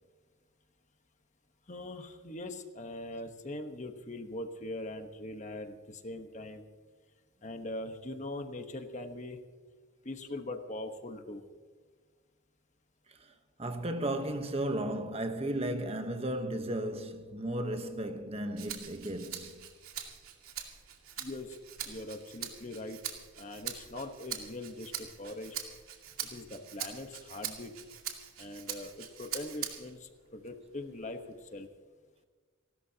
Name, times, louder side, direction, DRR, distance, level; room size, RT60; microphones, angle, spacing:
voice 1, 1.7-6.7 7.4-9.4 10.0-11.4 21.2-21.6 21.8-23.0 23.4-25.6 26.2-27.7 28.4-31.2 31.5-31.7, left 2 dB, 35° left, 1.2 m, -41 dB
voice 2, 13.6-19.7, right 1 dB, 30° right, 1.0 m, -34 dB
Rattle (instrument), 18.6-30.0 30.5-31.7, right 9 dB, 85° right, 2.3 m, -43 dB
29.5 x 13.0 x 2.9 m
head